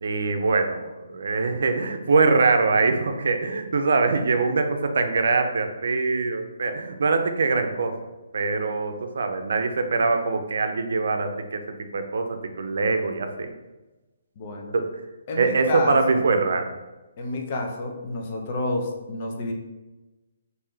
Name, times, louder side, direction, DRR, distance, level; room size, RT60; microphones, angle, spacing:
voice 1, 0.0-7.9 8.3-11.6 11.9-13.5 14.7-15.0 15.4-16.7, right 4 dB, 70° right, 6 dB, 0.5 m, -23 dB
voice 2, 14.4-14.7 15.3-16.0 17.2-19.5, left 2 dB, 35° left, 1 dB, 0.6 m, -29 dB
3.2 x 2.6 x 3.7 m, 1.1 s
hypercardioid pair, 160°, 0 cm